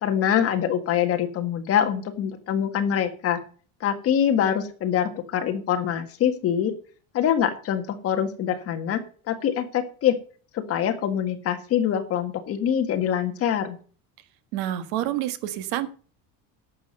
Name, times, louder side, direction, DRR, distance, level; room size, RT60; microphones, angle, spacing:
voice 1, 0.0-3.4 3.8-6.7 7.1-10.1 10.5-13.8, left 9 dB, 35° left, 7 dB, 1.6 m, -24 dB
voice 2, 14.5-15.9, right 13 dB, 75° right, 12 dB, 1.6 m, -28 dB
11.0 x 7.7 x 5.3 m, 0.40 s
cardioid pair, 180°, 42 cm